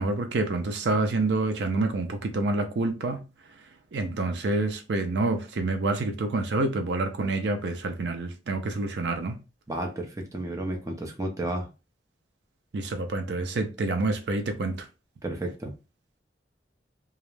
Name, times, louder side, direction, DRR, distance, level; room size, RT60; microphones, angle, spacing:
voice 1, 0.0-3.2 3.9-9.4 12.7-14.8, right 2 dB, 75° right, 0.5 m, -27 dB
voice 2, 9.7-11.7 15.2-15.7, right 1 dB, 20° right, 0.5 m, -32 dB
2.3 x 2.1 x 3.0 m
head